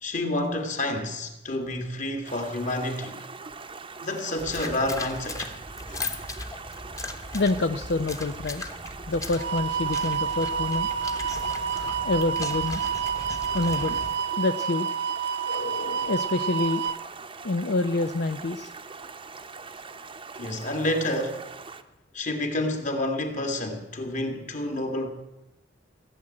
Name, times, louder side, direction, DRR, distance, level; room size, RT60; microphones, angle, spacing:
voice 1, 0.0-3.3 4.0-5.5 5.9-6.0 20.3-21.5 22.1-25.1, left 1 dB, 40° left, 2.1 m, -29 dB
Stream, 2.2-21.8, right 4 dB, 30° right, 0.9 m, -42 dB
sound 1, 4.4-14.1, left 2 dB, 20° left, 1.2 m, -38 dB
voice 2, 7.3-8.7 9.1-10.9 11.7-12.8 13.5-14.0 14.4-15.0 15.5-16.8 17.4-18.7, left 2 dB, 65° left, 0.6 m, -27 dB
sound 2, 9.4-17.0, right 7 dB, 65° right, 0.5 m, -29 dB
16.5 x 7.7 x 9.8 m
head